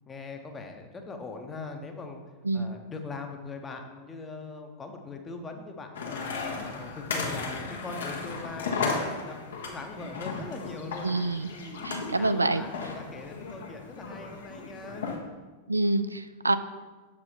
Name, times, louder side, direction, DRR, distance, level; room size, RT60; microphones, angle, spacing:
voice 1, 0.1-2.2 2.5-6.4 6.7-11.1 11.5-11.9 12.2-15.1, left 3 dB, 20° left, 4 dB, 0.8 m, -41 dB
sound 1, 5.9-15.2, left 4 dB, 65° left, 1.1 m, -35 dB
voice 2, 11.0-11.5 11.8-12.7 15.7-16.6, right 2 dB, 80° right, 12 dB, 0.3 m, -26 dB
7.0 x 4.9 x 4.4 m, 1.3 s
figure-of-eight pair, 90°, 0 cm